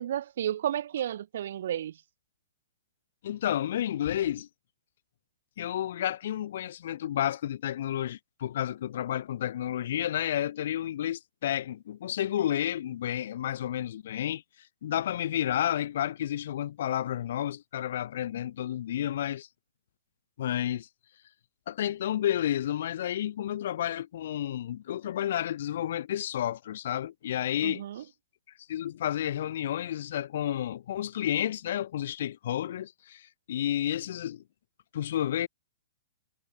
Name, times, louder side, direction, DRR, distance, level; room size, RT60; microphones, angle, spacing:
voice 1, 0.0-1.9 27.6-28.0, right 10 dB, 65° right, 5.1 m, -32 dB
voice 2, 3.2-4.5 5.6-14.4 14.8-19.5 20.4-20.9 21.7-27.8 28.7-34.4 34.9-35.5, left 11 dB, 60° left, 2.9 m, -31 dB
hypercardioid pair, 135°, 0 cm